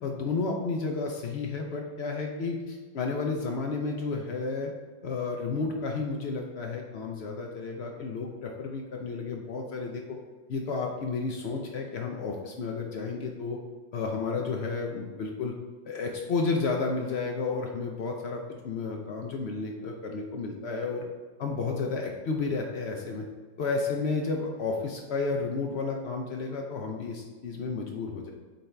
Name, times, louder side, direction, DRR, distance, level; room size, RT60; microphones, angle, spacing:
voice 1, 0.0-4.7 5.0-10.0 10.5-13.6 13.9-15.5 15.9-21.0 21.4-23.2 23.6-28.3, left 4 dB, 85° left, 1 dB, 0.5 m, -32 dB
8.4 x 4.0 x 3.3 m, 1.4 s
omnidirectional pair, 2.0 m